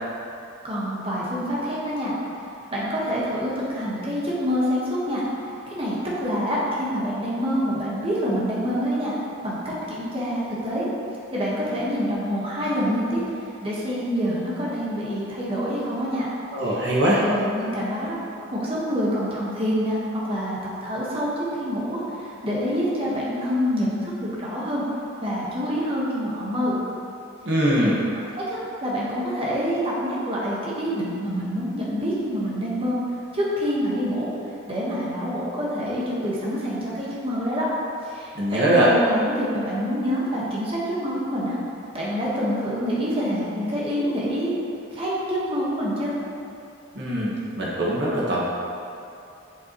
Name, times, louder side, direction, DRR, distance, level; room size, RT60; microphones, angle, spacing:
voice 1, 0.6-2.1 2.7-5.2 5.7-9.1 9.4-10.9 11.3-13.2 13.6-16.3 17.2-18.2 18.5-21.3 21.6-24.8 25.2-26.7 28.3-33.0 33.3-34.3 34.7-37.7 38.0-41.6 41.9-44.5 44.9-46.1, equal, 30° right, -7 dB, 1.4 m, -26 dB
voice 2, 16.5-17.2 27.4-28.0 38.3-38.9 46.9-48.4, right 1 dB, 60° right, -6 dB, 1.6 m, -21 dB
7.7 x 7.1 x 3.1 m, 2.7 s
head